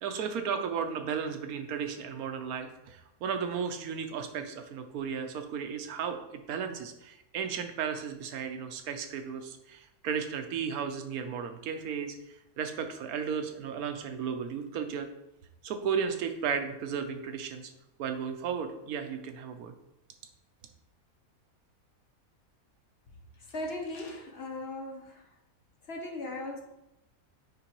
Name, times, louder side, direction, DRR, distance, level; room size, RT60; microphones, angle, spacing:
voice 1, 0.0-12.2 12.6-15.1 15.6-17.7 18.0-19.7, right 7 dB, 80° right, 7 dB, 1.1 m, -34 dB
voice 2, 23.5-25.3 25.9-26.6, left 2 dB, 50° left, 2 dB, 0.9 m, -38 dB
9.0 x 3.8 x 3.0 m, 0.88 s
omnidirectional pair, 1.5 m